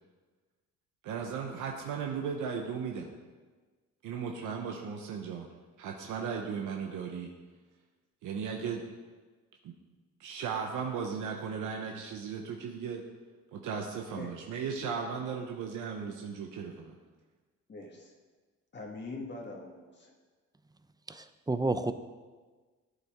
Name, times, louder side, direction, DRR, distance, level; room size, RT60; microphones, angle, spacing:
voice 1, 1.0-3.1 4.0-5.5 5.8-7.3 8.2-8.8 9.6-9.7 10.2-13.0 13.5-16.9, right 6 dB, 85° right, 2 dB, 1.0 m, -36 dB
voice 2, 17.7-18.1 18.7-20.1, left 3 dB, 35° left, -1 dB, 1.6 m, -43 dB
voice 3, 21.1-21.9, right 2 dB, 15° right, 11 dB, 0.5 m, -30 dB
14.0 x 8.2 x 3.6 m, 1.4 s
cardioid pair, 90°, 30 cm